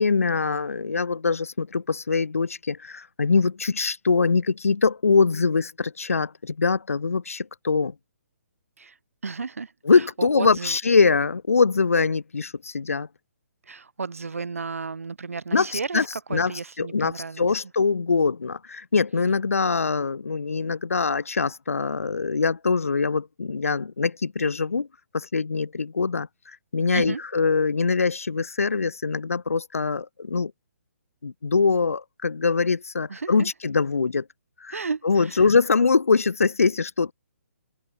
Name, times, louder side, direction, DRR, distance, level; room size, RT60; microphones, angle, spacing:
voice 1, 0.0-7.9 9.9-13.1 15.5-16.0 16.3-16.5 16.8-24.9 25.1-26.3 26.7-30.5 31.2-34.2 34.6-34.8 35.0-37.1, left 4 dB, 65° left, 1.2 m, -23 dB
voice 2, 9.2-10.8 13.7-17.6 26.9-27.2 33.1-33.5 34.7-35.4, right 4 dB, 65° right, 1.6 m, -33 dB
figure-of-eight pair, 135°, 8 cm